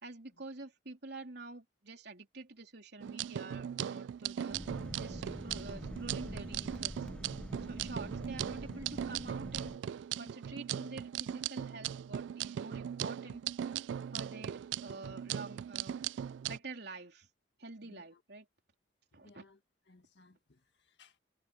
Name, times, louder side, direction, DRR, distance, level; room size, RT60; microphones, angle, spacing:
voice 1, 0.0-4.6 5.0-7.1 7.6-9.7 10.2-13.4 14.1-16.0 16.5-17.3 17.6-18.5 19.1-19.4, right 3 dB, 65° right, 3.7 m, -48 dB
sound 1, 3.0-16.6, right 9 dB, 80° right, 0.3 m, -39 dB
sound 2, 4.5-9.8, equal, 5° left, 0.7 m, -45 dB
voice 2, 17.8-18.2 19.1-19.6 19.9-21.2, left 3 dB, 65° left, 1.8 m, -62 dB
head